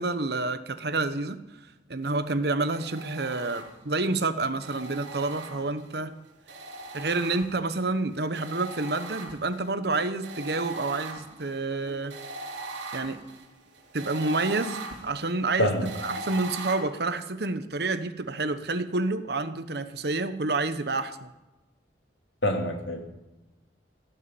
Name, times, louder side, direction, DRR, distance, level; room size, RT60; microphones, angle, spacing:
voice 1, 0.0-1.4 1.9-6.1 6.9-12.1 12.9-13.2 13.9-15.7 16.0-21.3, right 3 dB, 60° right, 11 dB, 1.1 m, -29 dB
sound 1, 2.7-4.0 4.6-5.9 6.5-7.8 8.4-9.7 10.2-16.8, right 3 dB, 85° right, 3.1 m, -40 dB
voice 2, 15.6-15.9 22.4-23.0, left 1 dB, 80° left, 3 dB, 2.8 m, -25 dB
17.5 x 7.1 x 8.9 m, 1.0 s
head